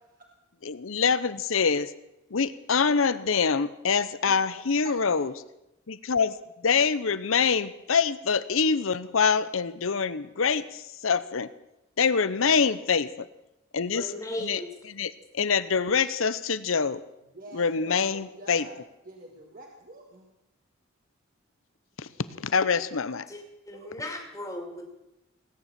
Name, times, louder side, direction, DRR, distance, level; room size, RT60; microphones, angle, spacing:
voice 1, 0.6-1.9 2.3-5.3 5.9-6.4 6.6-11.5 12.0-13.3 13.7-14.1 14.4-14.6 15.0-15.1 15.3-17.0 17.5-18.6 22.0-22.1 22.4-23.3, left 5 dB, 70° left, 16 dB, 0.8 m, -25 dB
voice 2, 4.3-5.3 12.4-12.7 17.3-18.8 19.0-20.3 22.1-22.2 23.7-23.9, right 2 dB, 45° right, 0 dB, 1.9 m, -45 dB
voice 3, 13.9-14.7 23.3-24.8, left 1 dB, 15° left, 2 dB, 2.6 m, -37 dB
19.0 x 9.8 x 7.5 m, 0.91 s
head